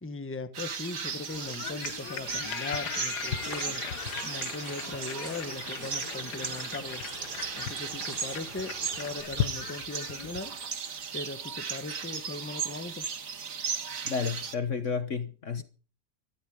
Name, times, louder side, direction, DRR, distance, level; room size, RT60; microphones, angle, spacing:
voice 1, 0.0-3.8 4.2-7.0 7.5-10.7 11.1-13.1, left 3 dB, 10° left, 1.2 m, -39 dB
sound 1, 0.5-14.5, right 6 dB, 50° right, 1.7 m, -37 dB
sound 2, 1.3-10.6, left 9 dB, 70° left, 1.6 m, -38 dB
sound 3, 3.2-9.2, right 1 dB, 30° right, 6.9 m, -47 dB
voice 2, 14.0-15.6, left 5 dB, 50° left, 1.3 m, -31 dB
16.5 x 13.5 x 5.1 m
omnidirectional pair, 1.9 m